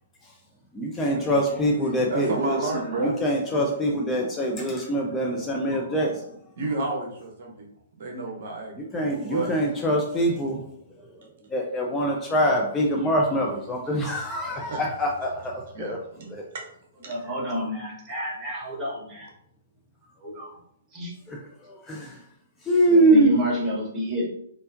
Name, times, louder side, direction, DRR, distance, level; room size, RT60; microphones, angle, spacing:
voice 1, 0.7-2.7 3.0-6.3 8.8-10.6 11.0-16.0 16.3-16.4 21.3-22.2 22.6-23.4, right 1 dB, 10° left, -1 dB, 0.5 m, -24 dB
voice 2, 2.1-3.1 6.6-7.7 8.0-8.7 9.3-9.5 14.6-14.8 15.7-16.6 17.0-17.1, right 2 dB, 50° right, 0 dB, 0.8 m, -31 dB
voice 3, 17.0-19.3 20.2-20.5 20.9-21.1 22.9-24.3, equal, 15° right, -5 dB, 1.1 m, -29 dB
4.2 x 2.6 x 2.5 m, 0.70 s
figure-of-eight pair, 120°, 0 cm